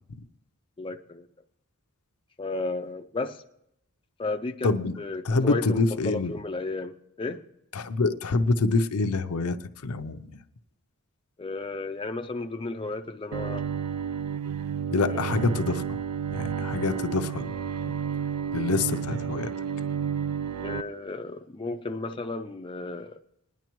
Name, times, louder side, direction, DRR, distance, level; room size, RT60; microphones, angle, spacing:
voice 1, 0.8-1.3 2.4-3.4 4.2-4.7 5.0-7.4 11.4-13.6 15.1-15.3 20.6-23.2, left 3 dB, 25° left, 0.4 m, -33 dB
voice 2, 4.6-4.9 5.2-6.3 7.7-9.6 9.8-10.4 14.9-15.8 16.3-17.5 18.5-19.5, left 3 dB, 80° left, 0.6 m, -26 dB
Bowed string instrument, 13.3-20.8, right 7 dB, 85° right, 0.4 m, -31 dB
20.5 x 10.5 x 3.0 m
head